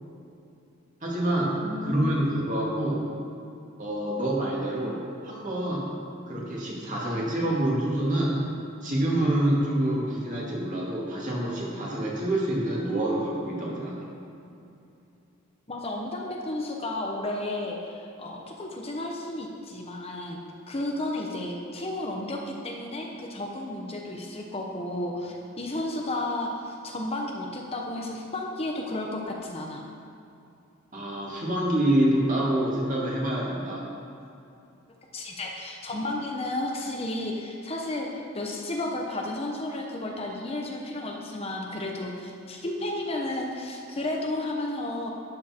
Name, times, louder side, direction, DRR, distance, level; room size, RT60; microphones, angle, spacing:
voice 1, 1.0-1.5 1.8-3.0 3.8-6.0 6.3-8.4 8.8-14.0 30.9-33.9, right 1 dB, 40° right, -4 dB, 2.3 m, -27 dB
voice 2, 1.6-2.2 15.7-29.8 35.1-45.1, left 1 dB, 30° left, 0 dB, 0.9 m, -32 dB
12.5 x 8.2 x 4.4 m, 2.7 s
head